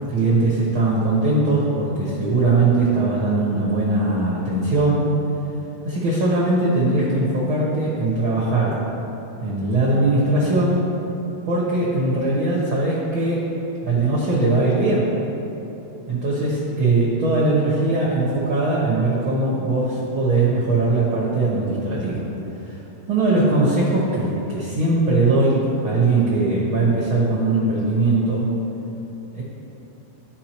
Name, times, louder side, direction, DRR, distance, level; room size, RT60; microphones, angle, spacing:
voice 1, 0.0-5.2 5.8-8.8 9.4-10.8 11.4-13.4 13.8-15.1 16.1-22.2 23.1-28.5 29.3-29.4, right 2 dB, 55° right, -6 dB, 1.5 m, -20 dB
14.0 x 4.7 x 3.0 m, 3.0 s
omnidirectional pair, 3.6 m